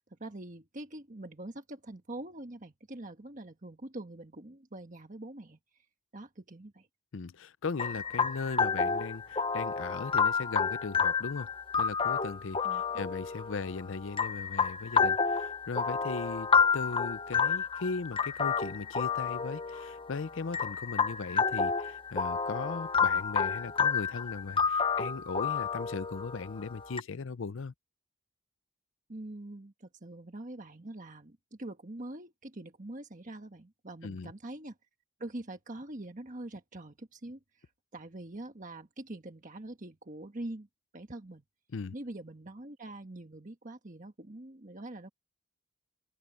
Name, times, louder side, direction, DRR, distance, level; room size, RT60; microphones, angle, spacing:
voice 1, 0.0-5.8 6.1-6.9 12.6-13.1 29.1-34.8 35.2-40.7 40.9-41.4 41.9-45.1, right 1 dB, 40° right, 1.4 m, -44 dB
voice 2, 7.1-11.5 11.8-27.7 34.0-34.3 41.7-41.9, left 4 dB, 65° left, 0.6 m, -38 dB
sound 1, 7.8-27.0, left 5 dB, 25° left, 0.9 m, -30 dB
head